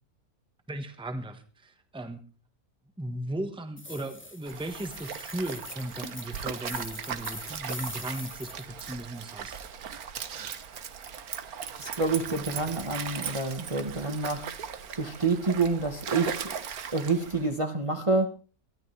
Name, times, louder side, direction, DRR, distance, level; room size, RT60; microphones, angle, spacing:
voice 1, 0.7-2.2 3.0-9.6, right 1 dB, 5° right, 8 dB, 1.2 m, -36 dB
sound 1, 3.8-8.9, left 2 dB, 10° left, 0.6 m, -43 dB
Stream, 4.5-17.5, right 7 dB, 80° right, 1.6 m, -38 dB
voice 2, 11.8-16.4 16.9-18.3, right 3 dB, 25° right, 5 dB, 1.3 m, -28 dB
22.5 x 13.5 x 3.3 m, 0.35 s
omnidirectional pair, 1.5 m